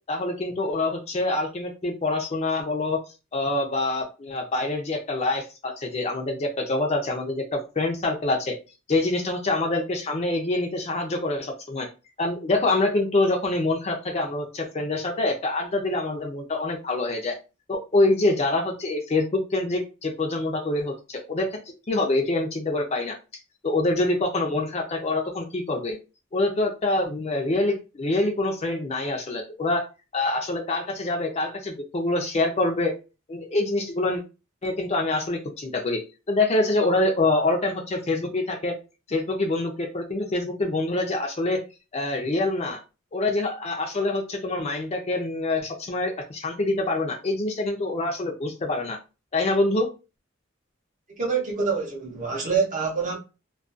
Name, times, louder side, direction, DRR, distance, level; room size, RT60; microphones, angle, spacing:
voice 1, 0.1-3.0 3.3-8.6 8.9-11.9 12.2-17.4 17.7-21.5 21.9-23.2 23.6-26.0 26.3-29.9 30.1-32.9 33.3-34.2 34.6-36.0 36.3-38.7 39.1-41.6 41.9-42.8 43.1-49.0 49.3-49.9, left 2 dB, 30° left, 0.4 m, -25 dB
voice 2, 51.2-53.2, right 5 dB, 40° right, 0.6 m, -26 dB
2.3 x 2.2 x 2.5 m
head